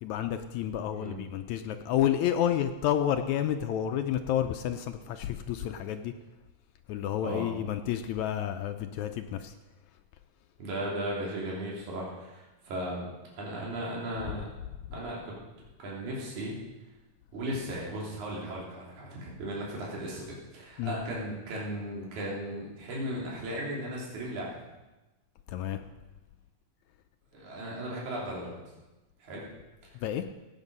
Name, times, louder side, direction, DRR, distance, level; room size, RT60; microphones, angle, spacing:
voice 1, 0.0-6.1 6.9-9.5 14.3-14.4 20.8-21.0 25.5-25.8 29.9-30.3, left 10 dB, 80° left, 7 dB, 1.7 m, -30 dB
voice 2, 0.9-1.2 7.2-7.5 10.6-14.4 14.9-15.3 15.8-16.6 17.3-24.6 27.3-28.6 29.2-29.5, right 1 dB, 60° right, -4 dB, 4.3 m, -36 dB
15.5 x 8.8 x 5.3 m, 1.1 s
omnidirectional pair, 3.9 m